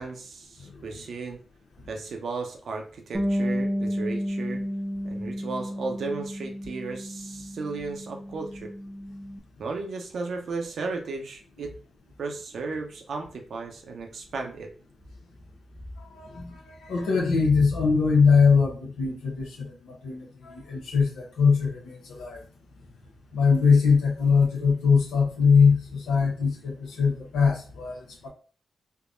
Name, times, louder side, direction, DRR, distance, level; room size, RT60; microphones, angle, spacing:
voice 1, 0.0-1.4 1.9-4.6 5.0-8.7 9.6-11.7 12.2-14.7, right 3 dB, 70° right, 3 dB, 0.7 m, -35 dB
Bass guitar, 3.1-9.4, equal, 25° right, 0.6 m, -31 dB
voice 2, 16.2-16.6 16.9-19.5 19.8-22.4 23.3-28.3, left 5 dB, 85° left, -1 dB, 0.8 m, -22 dB
3.5 x 2.2 x 2.5 m, 0.40 s
supercardioid pair, 40°, 0 cm